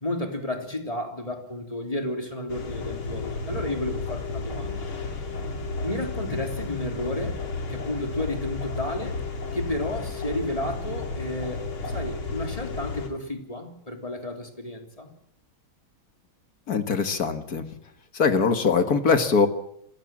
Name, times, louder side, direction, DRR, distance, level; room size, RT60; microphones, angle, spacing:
voice 1, 0.0-4.9 5.8-7.4 7.7-9.2 9.5-15.1, left 1 dB, 15° left, 3 dB, 3.1 m, -32 dB
sound 1, 2.5-13.1, left 3 dB, 75° left, 3.5 m, -32 dB
voice 2, 16.7-17.6 18.1-19.5, left 5 dB, 50° left, 8 dB, 1.9 m, -22 dB
26.5 x 16.0 x 7.5 m, 0.76 s
omnidirectional pair, 2.3 m